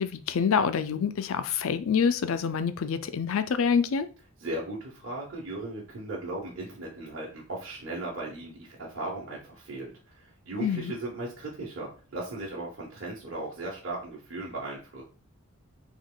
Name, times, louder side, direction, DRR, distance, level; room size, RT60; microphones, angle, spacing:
voice 1, 0.0-4.1 10.6-10.9, left 6 dB, 70° left, 12 dB, 0.4 m, -26 dB
voice 2, 4.4-15.0, right 2 dB, 60° right, -4 dB, 1.0 m, -37 dB
3.6 x 3.0 x 3.7 m, 0.36 s
head